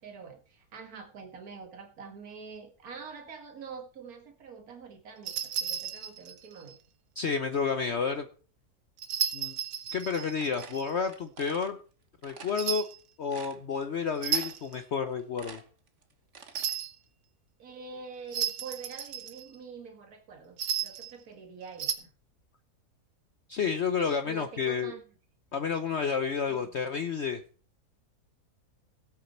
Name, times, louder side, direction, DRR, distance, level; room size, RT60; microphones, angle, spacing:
voice 1, 0.0-6.8 17.6-22.1 24.2-25.0 26.5-26.7, right 5 dB, 65° right, 4 dB, 2.1 m, -45 dB
sound 1, 5.2-6.7 9.0-10.9 12.6-13.0 14.1-14.8 16.5-16.9 18.3-19.6 20.6-21.1 21.7-21.9, right 9 dB, 85° right, 1.7 m, -33 dB
voice 2, 7.2-8.3 9.3-9.5 9.9-11.8 12.2-12.8 13.2-15.6 23.5-24.9 25.5-27.4, left 6 dB, 50° left, 8 dB, 1.0 m, -30 dB
sound 2, 10.1-11.7 12.2-12.6 13.0-13.1 13.3-14.0 14.3-14.7 15.1-16.7, right 5 dB, 50° right, 1.5 m, -47 dB
17.0 x 8.5 x 4.4 m, 0.39 s
omnidirectional pair, 1.6 m